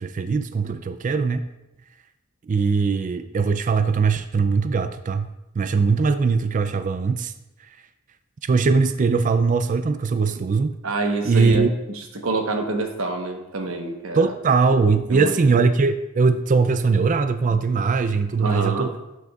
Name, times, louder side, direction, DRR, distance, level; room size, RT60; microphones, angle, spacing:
voice 1, 0.0-1.5 2.5-5.3 5.5-7.3 8.4-10.7 11.3-11.7 14.1-18.9, right 4 dB, 40° right, 10 dB, 0.4 m, -20 dB
voice 2, 10.8-11.7 11.9-14.3 15.1-15.4 18.4-18.9, right 2 dB, 75° right, 4 dB, 1.1 m, -26 dB
12.0 x 6.4 x 2.4 m, 0.94 s
head